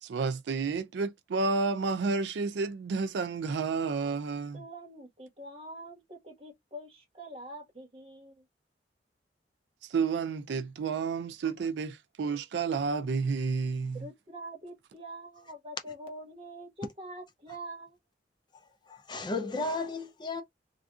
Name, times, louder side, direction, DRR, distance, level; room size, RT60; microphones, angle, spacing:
voice 1, 0.0-4.6 9.8-14.1, right 4 dB, 70° right, 0.4 m, -31 dB
voice 2, 4.5-8.5 13.9-18.0, right 1 dB, 30° right, 1.3 m, -45 dB
voice 3, 18.9-20.4, left 3 dB, 25° left, 0.4 m, -34 dB
3.5 x 2.5 x 2.3 m
head